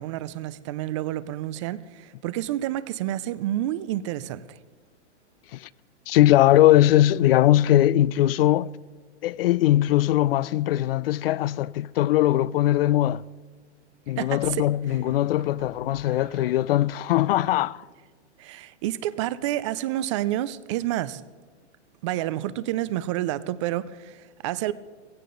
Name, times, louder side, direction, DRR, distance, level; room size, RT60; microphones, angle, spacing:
voice 1, 0.0-4.4 14.2-14.7 18.4-21.2 22.0-24.7, right 14 dB, 30° right, 0.4 m, -29 dB
voice 2, 6.1-8.8 9.2-13.2 14.1-17.9, left 14 dB, 55° left, 0.4 m, -20 dB
sound 1, 11.7-12.2 14.4-17.1, right 3 dB, 70° right, 1.8 m, -48 dB
16.0 x 16.0 x 3.8 m
hypercardioid pair, 145°, 35 cm